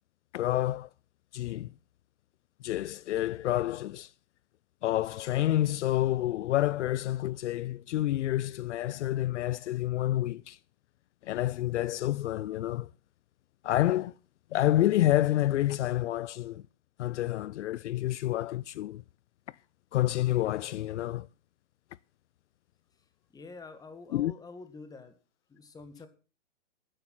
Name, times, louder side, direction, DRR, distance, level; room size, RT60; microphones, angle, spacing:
voice 1, 0.3-0.9 1.3-1.7 2.6-4.1 4.8-10.6 11.2-12.9 13.6-14.1 14.5-16.6 17.0-19.0 19.9-21.3 24.1-24.3, left 14 dB, 70° left, 0.5 m, -28 dB
voice 2, 23.3-25.2 25.5-26.1, left 3 dB, 10° left, 1.8 m, -47 dB
12.0 x 9.9 x 5.9 m
hypercardioid pair, 135°, 36 cm